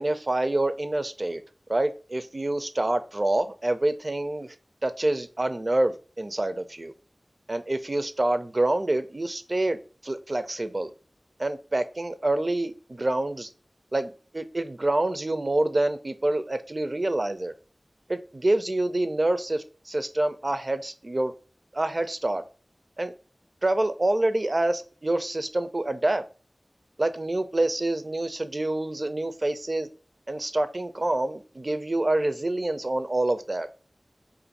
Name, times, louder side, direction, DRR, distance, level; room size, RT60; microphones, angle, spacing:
voice 1, 0.0-1.4 1.7-4.6 4.8-6.9 7.5-10.9 11.4-13.5 13.9-17.5 18.1-21.3 21.7-22.4 23.0-23.1 23.6-26.2 27.0-29.9 30.3-33.7, right 2 dB, 50° right, 0.4 m, -27 dB
2.6 x 2.5 x 4.0 m
wide cardioid pair, 40°, 0 cm